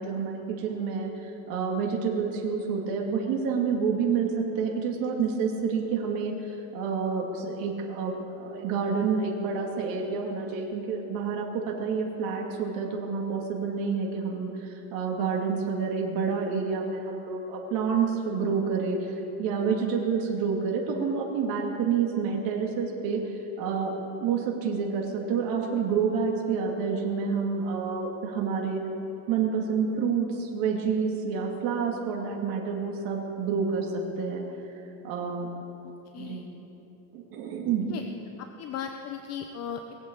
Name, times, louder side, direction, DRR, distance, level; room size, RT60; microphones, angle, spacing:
voice 1, 0.0-23.9 24.2-28.8 29.3-34.4 35.0-35.5 36.2-36.5 37.1-37.9, right 5 dB, 65° right, 0 dB, 2.6 m, -28 dB
voice 2, 35.8-36.4 37.9-38.0 38.4-40.1, left 8 dB, 40° left, 5 dB, 0.7 m, -37 dB
19.5 x 8.0 x 8.1 m, 3.0 s
cardioid pair, 150°, 38 cm